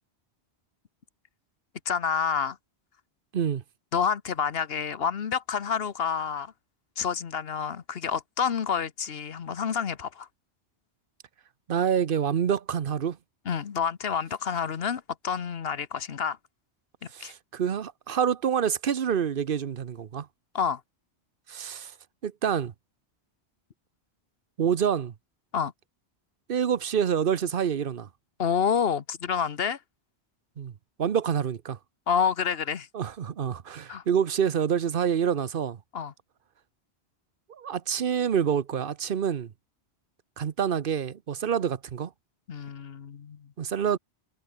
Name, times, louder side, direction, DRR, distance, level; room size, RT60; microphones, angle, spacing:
voice 1, 1.9-2.6 3.9-6.5 7.0-10.3 13.4-16.4 17.2-17.3 20.5-20.8 25.5-25.7 28.4-29.8 32.1-32.9 33.9-34.0 35.9-36.1 42.5-43.5, left 7 dB, 65° left, 1.2 m, -28 dB
voice 2, 11.7-13.2 17.1-20.3 21.5-21.9 22.2-22.7 24.6-25.1 26.5-28.1 30.6-30.7 31.0-31.8 32.9-35.8 37.5-39.5 40.4-42.1 43.6-44.0, right 8 dB, 55° right, 1.0 m, -27 dB
omnidirectional pair, 1.1 m